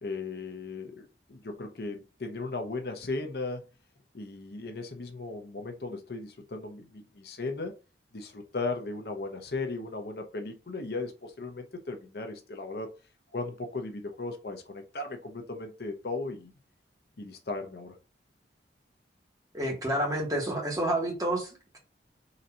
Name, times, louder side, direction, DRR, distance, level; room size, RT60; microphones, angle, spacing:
voice 1, 0.0-3.6 4.1-7.7 8.1-12.9 13.3-16.5 17.2-18.0, left 3 dB, 60° left, 5 dB, 0.7 m, -36 dB
voice 2, 19.5-21.8, right 1 dB, 20° right, 0 dB, 1.2 m, -29 dB
3.9 x 2.7 x 4.2 m, 0.31 s
head